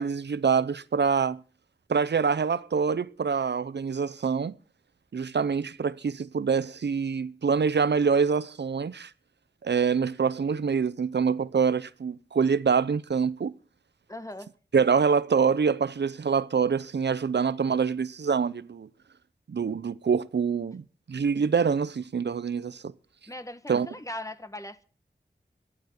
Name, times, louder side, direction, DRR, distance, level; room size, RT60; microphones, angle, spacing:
voice 1, 0.0-1.4 1.9-4.5 5.1-9.1 9.6-13.5 14.7-18.9 19.5-22.9 23.7-23.9, right 6 dB, 80° right, 0.6 m, -25 dB
voice 2, 14.1-14.5 23.3-24.8, left 1 dB, 20° left, 1.6 m, -39 dB
14.0 x 12.0 x 6.5 m
wide cardioid pair, 45°, 18 cm